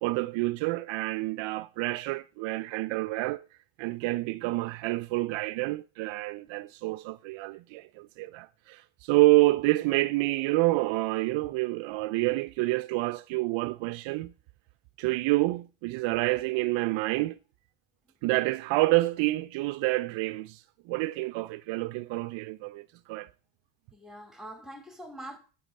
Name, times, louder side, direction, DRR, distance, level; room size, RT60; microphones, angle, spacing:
voice 1, 0.0-3.4 3.8-14.3 15.0-17.4 18.2-23.3, right 20 dB, 65° right, 0.7 m, -28 dB
voice 2, 23.9-25.4, right 1 dB, ahead, 4.1 m, -44 dB
10.5 x 9.1 x 7.6 m
supercardioid pair, 80°, 50 cm